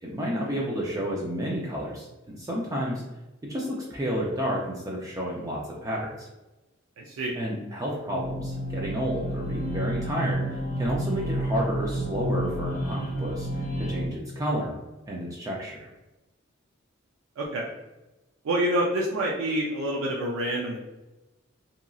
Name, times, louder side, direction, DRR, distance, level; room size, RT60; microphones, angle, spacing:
voice 1, 0.0-3.0 3.5-6.3 7.4-14.8 15.1-15.9, equal, 15° right, -3 dB, 0.4 m, -31 dB
voice 2, 7.0-7.4 17.4-17.7 18.4-20.8, right 1 dB, 80° right, -2 dB, 0.4 m, -27 dB
sound 1, 8.1-14.1, right 1 dB, 40° left, 0.6 m, -30 dB
2.9 x 2.5 x 2.3 m, 1.0 s
head